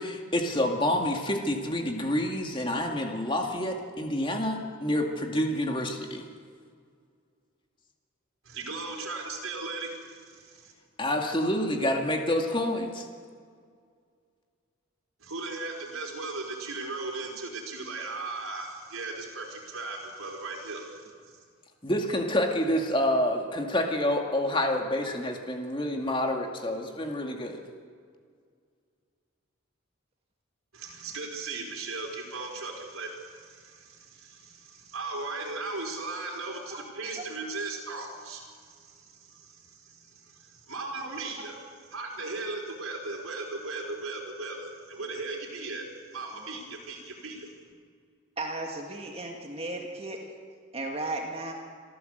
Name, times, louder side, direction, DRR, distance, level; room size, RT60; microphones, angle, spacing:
voice 1, 0.0-6.2 11.0-13.0 21.8-27.6, left 1 dB, 25° left, 2 dB, 2.2 m, -28 dB
voice 2, 8.4-10.7 15.2-21.4 30.7-41.6 41.9-45.9 46.1-47.5, right 3 dB, 85° right, 0 dB, 4.6 m, -37 dB
voice 3, 48.4-50.2 50.7-51.5, right 2 dB, 30° right, 1 dB, 2.0 m, -35 dB
27.0 x 13.5 x 8.0 m, 2.1 s
head